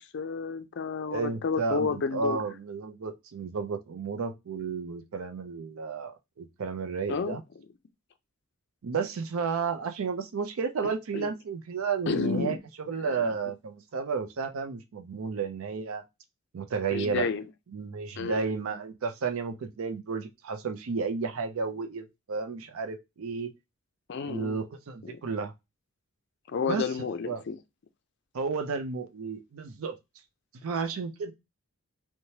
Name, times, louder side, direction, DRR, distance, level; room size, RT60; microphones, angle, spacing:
voice 1, 0.0-2.4 7.1-7.4 11.1-11.3 12.1-12.6 13.0-13.3 16.9-17.4 18.2-18.4 24.1-24.6 25.0-25.2 26.5-27.6, left 5 dB, 55° left, 0.4 m, -31 dB
voice 2, 1.1-7.4 8.8-16.0 16.5-17.3 17.7-23.5 24.3-25.5 26.7-26.9 27.3-27.4 28.3-30.0 30.6-31.3, right 5 dB, 75° right, 0.4 m, -32 dB
3.1 x 2.1 x 2.7 m
head